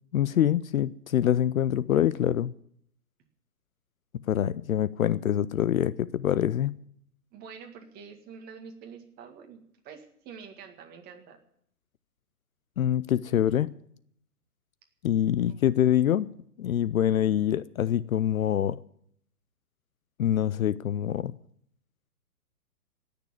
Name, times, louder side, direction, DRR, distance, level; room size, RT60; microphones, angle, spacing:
voice 1, 0.1-2.5 4.3-6.8 12.8-13.8 15.0-16.3 16.6-18.8 20.2-21.3, left 10 dB, 60° left, 0.7 m, -25 dB
voice 2, 7.3-11.4 15.4-15.6, right 6 dB, 20° right, 2.0 m, -47 dB
18.0 x 6.9 x 9.8 m
hypercardioid pair, 140°, 47 cm